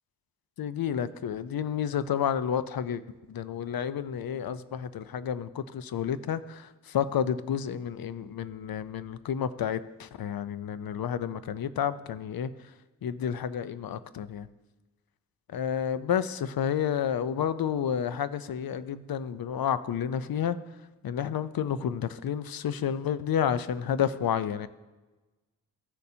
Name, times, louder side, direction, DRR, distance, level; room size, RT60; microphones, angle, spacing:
voice 1, 0.6-3.0 3.3-12.5 13.0-14.5 15.5-20.6 21.0-24.7, left 8 dB, 55° left, 14 dB, 0.6 m, -30 dB
14.5 x 6.6 x 2.8 m, 1.2 s
supercardioid pair, 50°, 43 cm